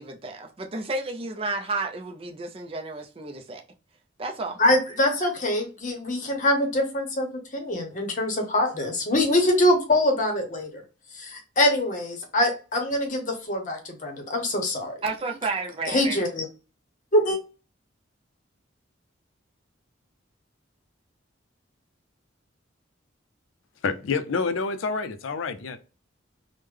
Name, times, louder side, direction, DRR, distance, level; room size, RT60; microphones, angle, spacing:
voice 1, 0.0-3.6 4.2-4.6 5.2-5.3 15.0-16.2, right 3 dB, 30° right, 0.4 m, -32 dB
voice 2, 4.6-10.7 11.1-14.9 15.9-16.5 17.1-17.4, left 1 dB, 40° left, 0.8 m, -24 dB
voice 3, 23.8-25.8, left 4 dB, 80° left, 0.4 m, -28 dB
3.5 x 2.1 x 3.2 m
head